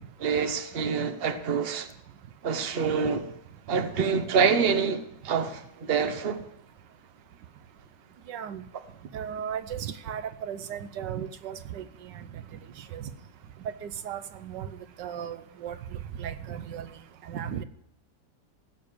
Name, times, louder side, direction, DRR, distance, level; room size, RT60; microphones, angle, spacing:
voice 1, 0.2-1.9 2.4-3.3 3.7-6.4, right 6 dB, 40° right, 1.2 m, -26 dB
voice 2, 8.3-8.6 9.1-11.8 12.1-12.2 12.9-13.1 13.8-14.7 15.0-15.8 16.2-16.9 17.3-17.6, right 8 dB, 80° right, 1.4 m, -35 dB
16.0 x 6.7 x 8.6 m
omnidirectional pair, 1.9 m